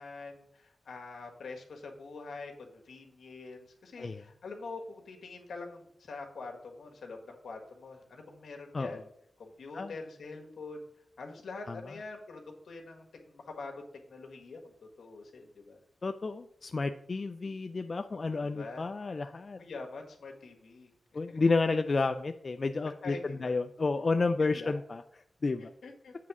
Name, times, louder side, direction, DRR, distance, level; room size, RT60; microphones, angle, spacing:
voice 1, 0.0-9.0 9.4-10.8 11.2-15.8 18.3-18.9 19.6-20.9 21.3-21.4 23.0-23.5 24.4-24.7 25.6-26.1, left 3 dB, 80° left, 2 dB, 1.4 m, -45 dB
voice 2, 16.0-19.6 21.1-25.0 25.4-25.7, left 3 dB, 50° left, 8 dB, 0.3 m, -31 dB
7.5 x 3.6 x 6.0 m, 0.72 s
cardioid pair, 65°, 0 cm